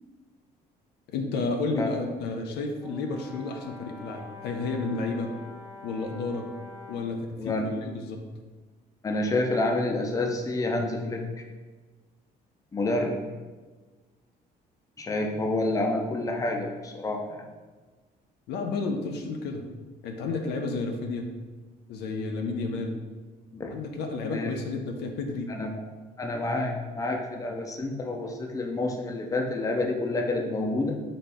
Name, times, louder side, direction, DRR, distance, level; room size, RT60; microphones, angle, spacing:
voice 1, 1.1-5.4 5.8-6.5 6.9-8.2 18.5-19.7 20.0-21.3 21.9-23.0 23.7-25.6, left 3 dB, 80° left, 4 dB, 0.6 m, -31 dB
Brass instrument, 2.8-7.2, left 3 dB, 20° right, 1.0 m, -45 dB
voice 2, 7.4-7.7 9.0-11.2 12.7-13.1 15.0-17.4 23.5-23.7 24.2-24.5 25.5-25.8 26.2-30.9, left 2 dB, 20° left, 2 dB, 0.6 m, -28 dB
4.2 x 3.2 x 3.5 m, 1.3 s
cardioid pair, 110°, 17 cm